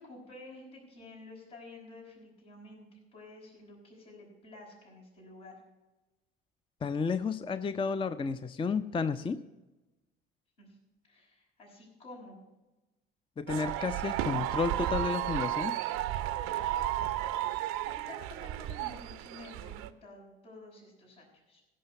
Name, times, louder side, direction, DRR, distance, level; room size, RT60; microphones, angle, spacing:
voice 1, 0.0-5.6 10.6-10.8 11.0-12.4 17.1-17.6 17.8-21.6, left 2 dB, 75° left, -4 dB, 5.4 m, -51 dB
voice 2, 6.8-9.4 13.4-15.8, left 5 dB, 20° left, 12 dB, 0.5 m, -32 dB
sound 1, 13.5-19.9, right 13 dB, 65° right, 0.7 m, -33 dB
16.5 x 5.7 x 6.6 m, 1.1 s
hypercardioid pair, 55°, 29 cm